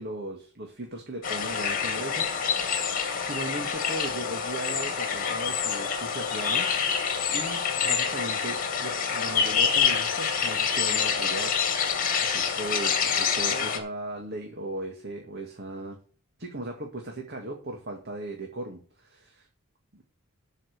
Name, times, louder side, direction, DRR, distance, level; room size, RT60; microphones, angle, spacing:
voice 1, 0.0-6.7 7.3-11.7 12.3-16.0 16.4-19.5 19.9-20.0, right 1 dB, 50° right, 2 dB, 2.2 m, -37 dB
sound 1, 1.2-13.8, left 6 dB, 40° left, 2.5 m, -27 dB
12.5 x 5.9 x 6.8 m, 0.39 s
head